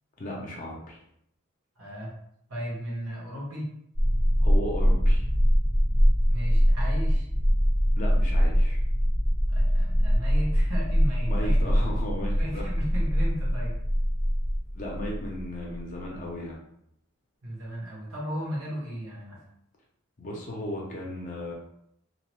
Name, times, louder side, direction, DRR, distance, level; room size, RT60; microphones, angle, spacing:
voice 1, 0.2-1.0 4.4-5.3 8.0-8.8 11.3-12.7 14.7-16.6 20.2-21.5, left 1 dB, 35° left, -2 dB, 0.5 m, -35 dB
voice 2, 1.8-2.1 2.5-3.7 6.3-7.3 9.5-11.8 12.4-13.8 17.4-19.5, equal, 85° right, -4 dB, 1.2 m, -35 dB
sound 1, 3.9-16.2, equal, 65° right, 1.1 m, -23 dB
2.8 x 2.1 x 2.9 m, 0.73 s
head